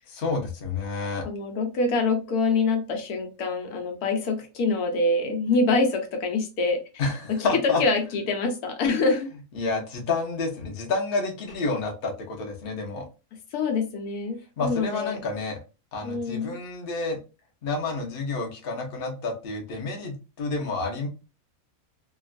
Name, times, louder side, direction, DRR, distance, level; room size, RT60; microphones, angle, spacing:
voice 1, 0.1-1.2 7.0-7.8 9.5-13.1 14.6-15.6 15.9-17.2 17.6-21.1, left 3 dB, 45° left, 1 dB, 0.9 m, -29 dB
voice 2, 1.2-6.8 7.3-9.3 13.5-15.2 16.0-16.6, left 3 dB, 85° left, 4 dB, 1.2 m, -25 dB
2.9 x 2.3 x 2.4 m, 0.30 s
omnidirectional pair, 1.5 m